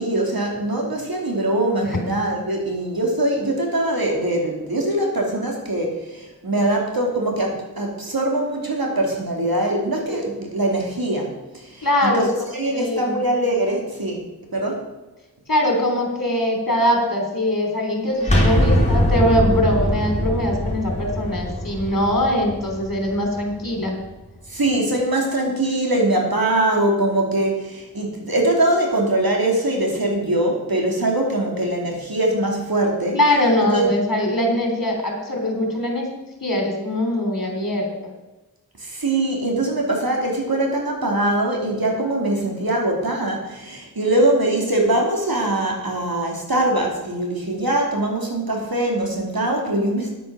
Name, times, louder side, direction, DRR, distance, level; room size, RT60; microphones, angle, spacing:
voice 1, 0.0-12.3 12.5-14.2 14.5-14.8 24.5-33.2 33.7-33.9 38.8-50.1, right 1 dB, 65° right, 0 dB, 2.9 m, -22 dB
voice 2, 11.8-12.3 12.7-13.2 15.5-24.0 33.1-36.1 36.4-38.1, left 1 dB, 60° left, 2 dB, 3.2 m, -22 dB
sound 1, 18.2-23.9, equal, 20° left, 3.5 m, -22 dB
9.7 x 9.0 x 6.2 m, 1.1 s
wide cardioid pair, 50°, 38 cm